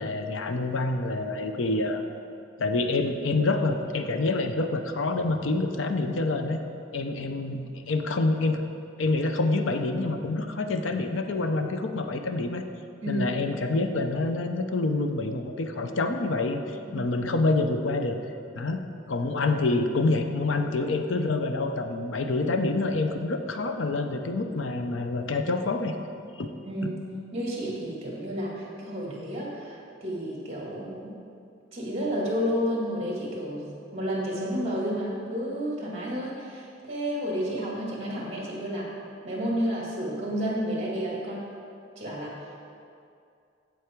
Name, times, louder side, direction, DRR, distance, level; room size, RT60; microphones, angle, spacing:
voice 1, 0.0-2.0 2.6-6.6 6.9-8.6 9.0-12.6 13.1-18.2 18.5-18.8 19.1-25.9 26.4-26.5 26.8-26.9, left 2 dB, 75° left, 6 dB, 0.6 m, -27 dB
voice 2, 26.7-27.0 27.3-31.1 31.7-38.9 39.2-41.4 42.0-42.3, equal, 35° right, -4 dB, 2.1 m, -31 dB
8.3 x 7.7 x 4.5 m, 2.5 s
head